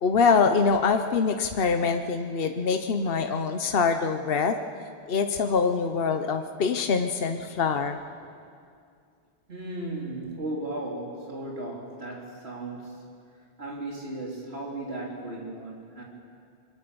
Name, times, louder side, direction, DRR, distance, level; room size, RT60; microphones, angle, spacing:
voice 1, 0.0-4.6 5.1-8.0, left 5 dB, 65° left, 6 dB, 1.1 m, -24 dB
voice 2, 9.5-13.1 13.6-16.0, right 2 dB, 80° right, -2 dB, 4.2 m, -36 dB
26.5 x 23.0 x 7.0 m, 2.3 s
omnidirectional pair, 1.1 m